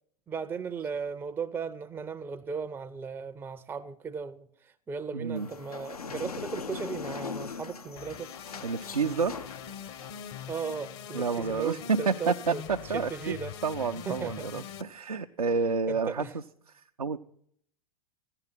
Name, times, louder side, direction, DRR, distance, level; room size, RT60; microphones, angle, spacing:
voice 1, 0.3-8.3 10.5-12.6 12.9-13.5 14.1-14.5 15.9-16.3, right 6 dB, 10° right, 0.5 m, -36 dB
voice 2, 5.1-5.5 8.6-9.3 11.1-13.4 13.6-17.2, right 5 dB, 90° right, 0.5 m, -30 dB
sound 1, 5.4-10.6, left 6 dB, 85° left, 0.7 m, -41 dB
sound 2, 8.0-14.8, left 9 dB, 45° left, 0.9 m, -43 dB
14.5 x 9.9 x 5.9 m
figure-of-eight pair, 95°, 19 cm